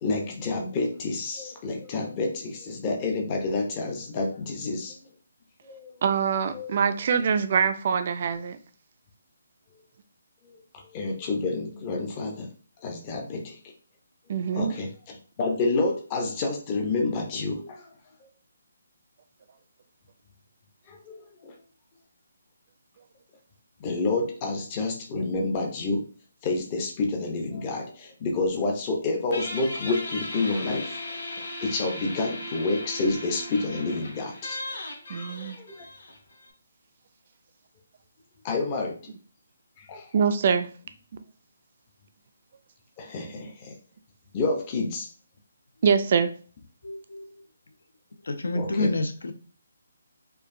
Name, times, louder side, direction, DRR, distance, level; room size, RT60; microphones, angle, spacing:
voice 1, 0.0-5.0 5.6-6.0 6.5-6.7 10.4-10.6 10.9-12.5 12.8-13.6 14.5-17.9 20.9-21.5 23.8-26.0 26.4-31.0 31.6-34.6 35.1-35.8 38.4-39.0 39.8-40.1 43.0-43.7 44.3-45.1 48.5-48.9, left 3 dB, 20° left, 0.5 m, -29 dB
voice 2, 6.0-8.6 14.3-14.7 35.1-35.6 40.1-40.7 45.8-46.3, right 6 dB, 35° right, 0.3 m, -24 dB
Guitar, 29.3-36.5, left 1 dB, 60° left, 1.9 m, -37 dB
voice 3, 46.8-47.5 48.2-49.3, left 2 dB, 80° left, 0.6 m, -28 dB
4.5 x 2.6 x 2.5 m
hypercardioid pair, 175°, 0 cm